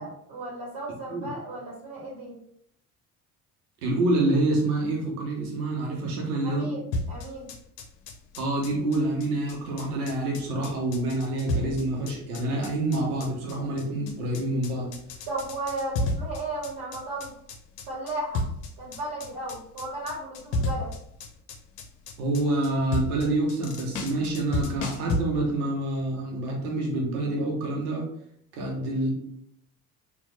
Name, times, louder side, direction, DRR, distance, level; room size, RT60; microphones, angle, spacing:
voice 1, 0.0-2.4 6.4-6.8 7.1-7.5 15.3-17.3 17.9-18.4 18.8-20.9 28.6-28.8, right 2 dB, 50° right, -4 dB, 1.4 m, -35 dB
voice 2, 3.8-6.7 8.4-14.9 22.2-28.0 28.5-29.3, right 2 dB, 75° right, -1 dB, 1.1 m, -27 dB
sound 1, 6.9-25.2, left 2 dB, 60° left, 0.8 m, -32 dB
4.3 x 2.6 x 3.2 m, 0.71 s
figure-of-eight pair, 60°, 45 cm